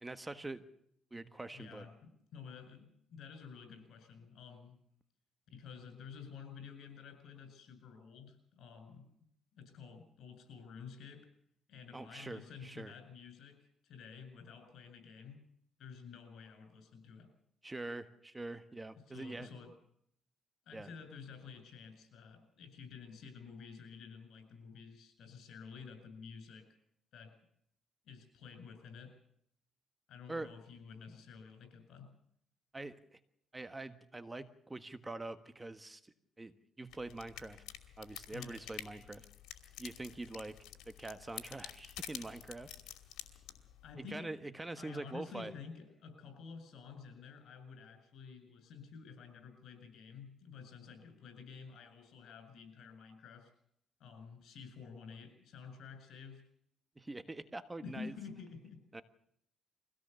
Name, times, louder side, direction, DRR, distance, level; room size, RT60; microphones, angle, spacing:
voice 1, 0.0-0.7 1.1-1.8 11.9-12.9 17.6-19.5 20.7-20.9 30.3-30.5 32.7-33.2 33.5-37.6 38.0-39.3 39.8-40.6 40.8-42.7 44.0-45.5 57.0-58.1 58.9-59.0, right 2 dB, 15° right, 11 dB, 1.4 m, -44 dB
voice 2, 1.5-4.8 5.5-9.1 9.5-11.3 11.7-15.4 15.8-17.3 19.1-19.7 20.7-26.7 27.1-27.3 28.0-29.1 30.1-32.1 38.3-38.9 43.8-44.3 44.8-53.5 54.0-56.4 57.8-58.8, left 5 dB, 75° left, 7 dB, 7.6 m, -51 dB
sound 1, 36.9-43.9, left 11 dB, 90° left, 2.7 m, -49 dB
24.0 x 17.0 x 7.0 m, 0.71 s
cardioid pair, 90°, 0 cm